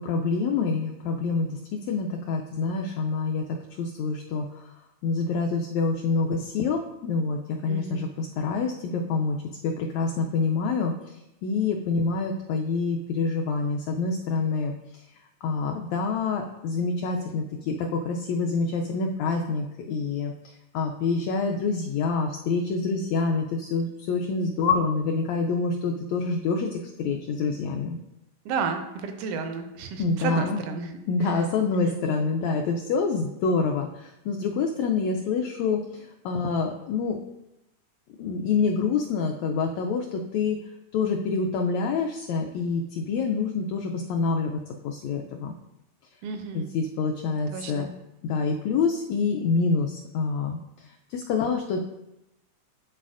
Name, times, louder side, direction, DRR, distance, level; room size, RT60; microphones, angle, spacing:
voice 1, 0.0-4.5 5.0-9.4 9.6-10.9 11.4-14.7 15.4-20.3 20.7-28.0 30.0-30.6 31.1-37.2 38.2-40.6 40.9-45.5 46.5-47.9 48.2-50.6 51.1-51.9, left 4 dB, 85° left, 2 dB, 1.6 m, -26 dB
voice 2, 7.7-8.1 28.5-31.4 31.7-32.0 46.2-46.7 47.5-47.9, right 5 dB, 80° right, 6 dB, 2.0 m, -32 dB
11.0 x 4.0 x 2.5 m, 0.91 s
omnidirectional pair, 3.7 m